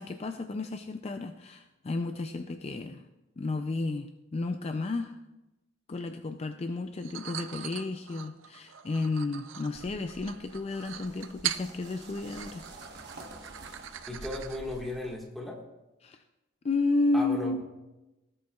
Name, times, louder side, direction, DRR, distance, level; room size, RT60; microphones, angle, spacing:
voice 1, 0.0-3.0 3.4-5.1 5.9-12.6 16.0-16.2 16.6-17.6, left 3 dB, 35° left, 7 dB, 0.4 m, -32 dB
sound 1, 7.0-14.8, right 11 dB, 85° right, 0.5 m, -41 dB
sound 2, 9.7-15.2, right 2 dB, 60° right, 1.2 m, -48 dB
voice 2, 14.1-15.6 17.1-17.6, left 2 dB, ahead, -2 dB, 1.6 m, -36 dB
17.0 x 7.7 x 2.3 m, 1.0 s
head